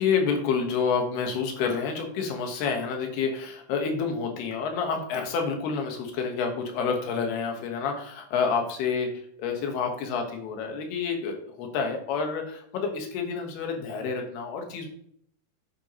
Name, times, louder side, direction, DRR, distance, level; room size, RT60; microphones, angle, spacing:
voice 1, 0.0-9.1 9.4-14.9, left 5 dB, 80° left, 3 dB, 3.3 m, -28 dB
9.4 x 8.1 x 3.0 m, 0.66 s
omnidirectional pair, 4.6 m